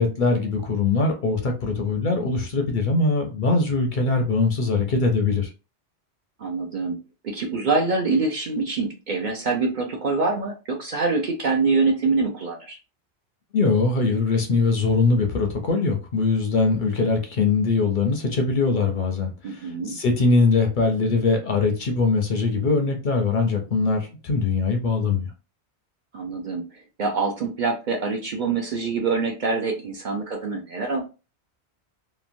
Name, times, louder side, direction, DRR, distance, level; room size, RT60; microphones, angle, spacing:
voice 1, 0.0-5.5 13.5-25.3, left 3 dB, 55° left, 3 dB, 0.6 m, -22 dB
voice 2, 6.4-12.8 19.4-20.0 26.1-31.0, right 4 dB, 55° right, 1 dB, 0.6 m, -25 dB
2.9 x 2.1 x 2.5 m, 0.31 s
omnidirectional pair, 1.1 m